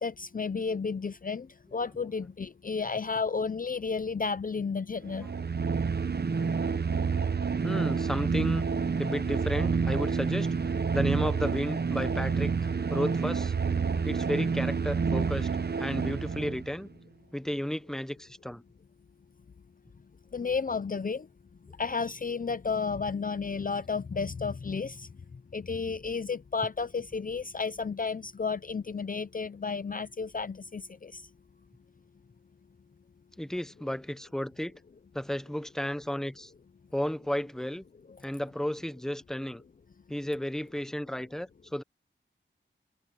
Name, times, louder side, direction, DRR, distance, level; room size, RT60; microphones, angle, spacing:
voice 1, 0.0-5.3 20.3-21.3 21.8-25.1 25.5-31.2, left 5 dB, 45° left, 0.6 m, -32 dB
sound 1, 5.1-16.7, right 5 dB, 50° right, 0.8 m, -29 dB
voice 2, 7.6-8.7 9.0-10.5 10.9-13.5 14.0-15.5 15.8-16.9 17.3-18.6 33.4-34.8 35.1-36.5 36.9-37.8 38.2-39.6 40.1-41.8, equal, ahead, 1.0 m, -33 dB
wide cardioid pair, 100°, 21 cm